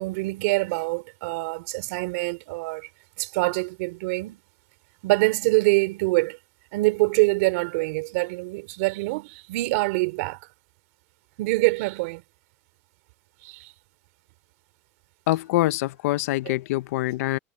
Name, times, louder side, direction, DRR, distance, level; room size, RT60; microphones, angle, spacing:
voice 1, 0.0-2.9 3.2-4.4 5.0-6.4 6.7-10.4 11.4-12.2 13.4-13.7 16.5-16.6, right 24 dB, 65° right, 3.7 m, -25 dB
voice 2, 15.3-17.4, left 17 dB, 75° left, 0.7 m, -24 dB
supercardioid pair, 145°, 8 cm